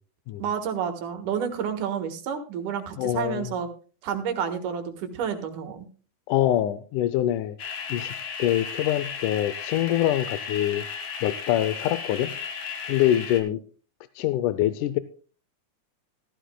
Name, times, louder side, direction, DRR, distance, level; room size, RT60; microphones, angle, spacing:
voice 1, 0.4-3.7 4.0-5.9, right 7 dB, 80° right, 6 dB, 3.0 m, -30 dB
voice 2, 3.0-3.5 6.3-7.6 7.9-8.1 8.4-10.8 11.2-12.3 12.9-13.6 14.2-15.0, left 13 dB, 85° left, 13 dB, 2.1 m, -24 dB
sound 1, 7.6-13.4, left 6 dB, 70° left, 3.1 m, -35 dB
15.0 x 14.5 x 2.2 m, 0.37 s
omnidirectional pair, 3.5 m